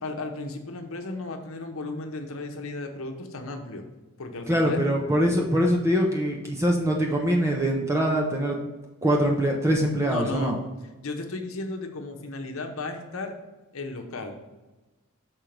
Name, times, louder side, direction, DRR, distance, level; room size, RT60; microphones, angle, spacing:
voice 1, 0.0-3.8 4.2-4.8 10.1-10.5 11.0-13.4 13.7-14.4, left 2 dB, 65° left, 4 dB, 0.9 m, -34 dB
voice 2, 4.5-8.6 9.0-10.6, equal, 15° right, 0 dB, 0.6 m, -23 dB
6.2 x 4.5 x 5.1 m, 1.1 s
head